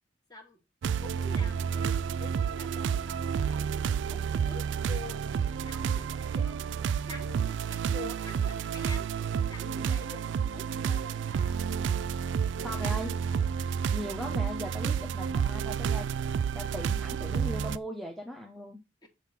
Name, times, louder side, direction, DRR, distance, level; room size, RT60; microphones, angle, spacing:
sound 1, 0.8-17.8, right 7 dB, 80° right, 0.3 m, -30 dB
voice 1, 1.0-11.9 12.6-13.5 19.0-19.1, left 2 dB, 25° left, 3 dB, 1.8 m, -47 dB
voice 2, 12.6-13.1 13.9-16.1 16.5-18.8, equal, ahead, 0 dB, 0.7 m, -38 dB
7.3 x 3.6 x 5.7 m, 0.26 s
head